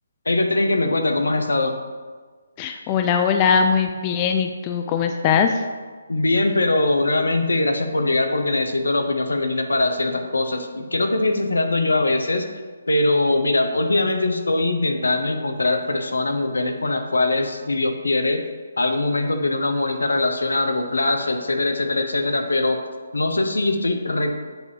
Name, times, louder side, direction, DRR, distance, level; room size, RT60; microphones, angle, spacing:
voice 1, 0.3-1.8 6.1-12.5 12.9-18.4 18.8-22.8 23.1-24.3, left 2 dB, 80° left, 5 dB, 0.7 m, -22 dB
voice 2, 2.6-5.5, left 6 dB, 25° left, 6 dB, 0.4 m, -20 dB
7.8 x 2.8 x 4.8 m, 1.4 s
figure-of-eight pair, 150°, 0 cm